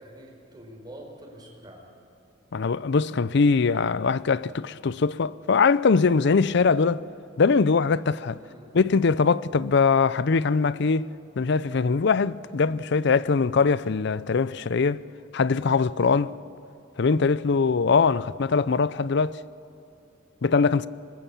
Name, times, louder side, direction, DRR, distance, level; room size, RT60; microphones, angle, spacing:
voice 1, 0.0-1.9 8.4-8.7, right 1 dB, 20° right, 4.5 m, -45 dB
voice 2, 2.5-7.0 7.4-8.4 8.7-11.1 11.4-15.0 15.3-16.4 17.0-19.4 20.4-20.9, left 4 dB, 65° left, 0.5 m, -22 dB
24.0 x 20.0 x 7.0 m
head